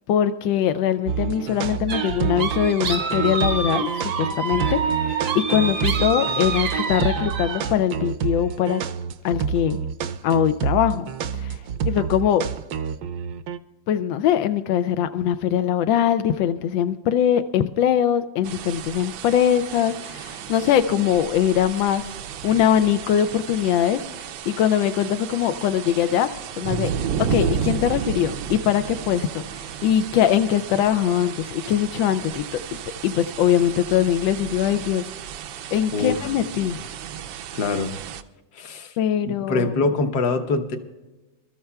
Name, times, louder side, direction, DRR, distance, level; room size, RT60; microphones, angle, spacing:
voice 1, 0.1-8.8 9.2-9.8 10.2-12.5 13.9-22.2 22.4-26.9 27.3-32.6 33.0-35.1 35.7-36.9 39.0-39.7, left 10 dB, 90° left, 10 dB, 1.3 m, -22 dB
sound 1, 1.1-13.6, right 7 dB, 70° right, 1.0 m, -28 dB
sound 2, 1.9-7.7, right 4 dB, 55° right, 0.7 m, -27 dB
sound 3, 18.4-38.2, right 8 dB, 90° right, 1.4 m, -33 dB
voice 2, 37.5-37.9 38.5-39.0 39.3-40.8, left 3 dB, 60° left, 6 dB, 1.5 m, -24 dB
26.0 x 13.0 x 2.3 m, 1.1 s
omnidirectional pair, 2.0 m